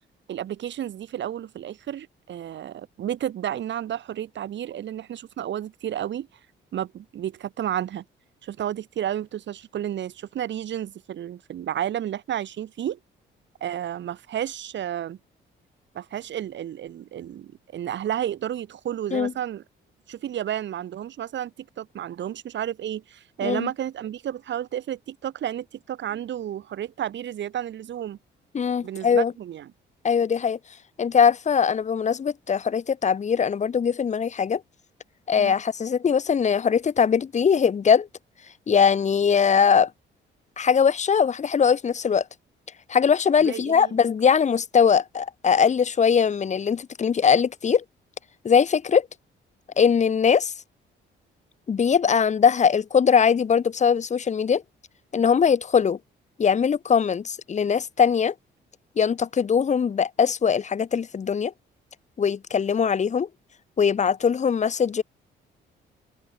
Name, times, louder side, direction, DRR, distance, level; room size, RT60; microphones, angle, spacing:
voice 1, 0.3-6.3 6.7-8.0 8.4-13.0 13.6-15.2 15.9-19.6 20.1-28.2 28.8-29.7 35.4-35.5 43.4-43.9, right 10 dB, 65° right, 2.8 m, -31 dB
voice 2, 28.5-29.3 30.0-30.6 31.0-34.6 35.3-38.1 38.7-39.9 40.6-42.2 42.9-47.8 48.4-49.1 49.8-50.5 51.7-54.6 55.1-56.0 56.4-58.3 59.0-61.5 62.2-63.3 63.8-65.0, left 6 dB, 35° left, 0.9 m, -21 dB
cardioid pair, 90°, 20 cm